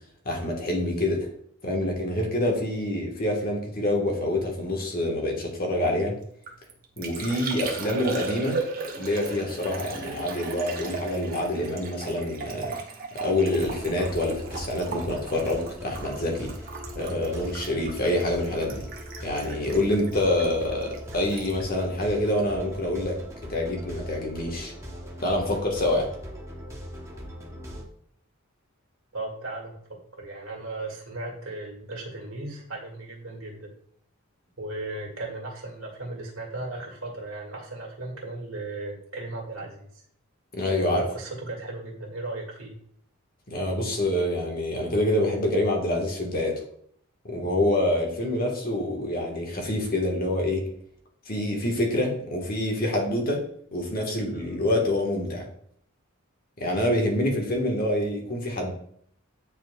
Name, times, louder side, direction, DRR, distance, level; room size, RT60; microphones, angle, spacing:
voice 1, 0.2-1.3 1.6-6.1 7.0-8.6 9.0-12.7 13.1-16.5 16.9-18.8 19.2-23.2 23.5-24.7 25.2-26.1 40.5-41.0 43.5-46.6 47.3-50.6 51.3-53.4 53.7-55.5 56.6-58.7, left 1 dB, 45° left, 1 dB, 1.3 m, -26 dB
Liquid, 6.2-22.9 23.1-23.6, right 4 dB, 45° right, 1.0 m, -38 dB
sound 1, 13.6-27.8, equal, 15° right, 0.8 m, -40 dB
voice 2, 29.1-33.7 34.6-40.0 40.8-42.7, right 2 dB, 75° right, -2 dB, 2.0 m, -36 dB
9.7 x 4.3 x 2.3 m, 0.64 s
head